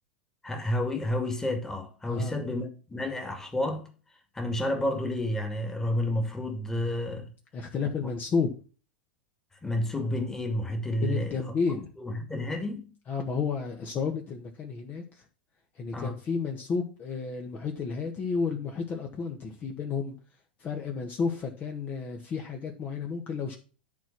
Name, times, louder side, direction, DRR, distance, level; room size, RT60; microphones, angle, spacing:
voice 1, 0.4-3.9 4.3-7.3 9.6-11.4 12.0-12.9 15.9-16.2, left 1 dB, 10° left, 2.2 m, -30 dB
voice 2, 7.5-8.5 11.0-11.9 13.1-15.2 15.7-20.2 20.6-23.6, left 5 dB, 30° left, 1.6 m, -31 dB
10.5 x 4.6 x 6.0 m
hypercardioid pair, 95°, 5 cm